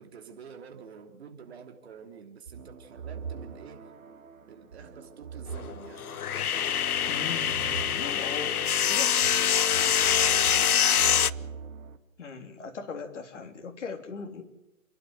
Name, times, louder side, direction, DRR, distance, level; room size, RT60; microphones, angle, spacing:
voice 1, 0.0-3.9 4.5-6.0 8.7-9.2 9.5-10.7, right 6 dB, 45° right, 5 dB, 3.3 m, -48 dB
sound 1, 2.5-12.0, right 6 dB, 65° right, 2.2 m, -42 dB
sound 2, 5.5-11.3, left 9 dB, 80° left, 0.8 m, -25 dB
voice 2, 7.1-9.5 12.2-14.4, left 5 dB, 55° left, 4 dB, 3.4 m, -39 dB
30.0 x 11.5 x 9.2 m, 0.95 s
hypercardioid pair, 160°, 44 cm